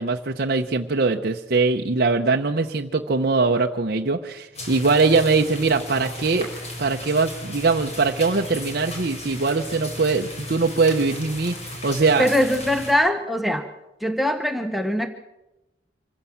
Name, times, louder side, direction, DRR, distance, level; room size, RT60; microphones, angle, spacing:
voice 1, 0.0-6.5 6.8-12.3, right 3 dB, 55° right, 2 dB, 0.9 m, -22 dB
sound 1, 4.5-12.9, left 1 dB, 40° left, 5.1 m, -35 dB
voice 2, 12.2-13.7 14.0-15.1, left 1 dB, ahead, 5 dB, 0.9 m, -22 dB
25.5 x 15.5 x 7.3 m, 0.99 s
head